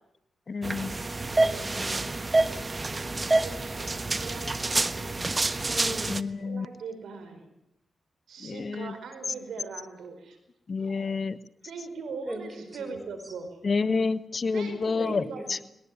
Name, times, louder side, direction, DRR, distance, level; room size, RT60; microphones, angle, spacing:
voice 1, 0.5-0.9 6.1-6.7 8.4-8.9 10.7-11.4 13.6-15.2 15.5-15.6, left 4 dB, 50° left, 15 dB, 1.1 m, -28 dB
sound 1, 0.6-6.2, right 2 dB, 35° right, 1.3 m, -27 dB
voice 2, 1.3-2.1 5.7-6.2 12.3-13.3 15.0-15.5, equal, 10° right, 8 dB, 6.7 m, -39 dB
voice 3, 3.4-5.1 6.4-7.5 8.3-10.4 10.8-11.2 11.6-13.5 14.5-15.7, right 4 dB, 85° right, 8 dB, 4.7 m, -41 dB
21.5 x 18.5 x 9.5 m, 0.80 s
cardioid pair, 55°, 0 cm